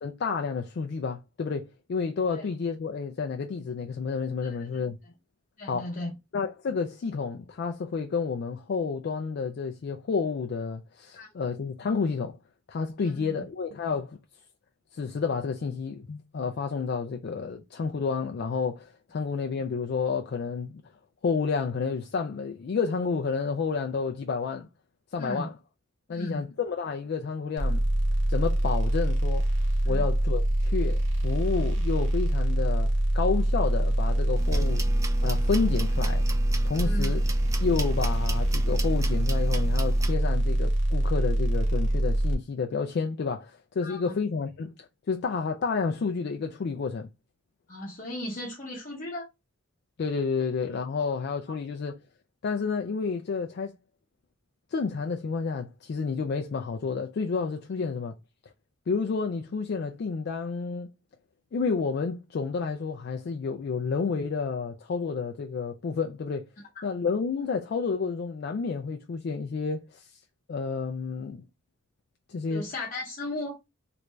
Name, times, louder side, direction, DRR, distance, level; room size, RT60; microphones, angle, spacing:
voice 1, 0.0-5.0 5.7-5.9 6.3-12.4 12.7-14.2 14.9-20.8 21.2-24.7 25.1-25.5 26.1-27.8 28.3-29.5 29.9-34.8 35.2-36.2 36.6-37.2 37.6-47.1 50.0-52.0 52.4-53.7 54.7-58.2 58.9-60.9 61.5-66.5 66.8-70.1 70.5-71.4 72.3-72.7, left 5 dB, 55° left, 0.4 m, -30 dB
voice 2, 4.4-4.8 5.6-6.1 11.1-11.3 13.0-13.4 25.2-25.5 26.1-26.4 29.8-30.1 36.8-37.1 43.8-44.1 47.7-49.3 66.8-66.9 72.5-73.5, left 1 dB, 40° left, 0.8 m, -36 dB
sound 1, 27.6-42.3, right 1 dB, 65° right, 0.8 m, -25 dB
sound 2, 34.4-40.2, right 2 dB, 15° right, 0.3 m, -37 dB
3.3 x 2.5 x 3.1 m
head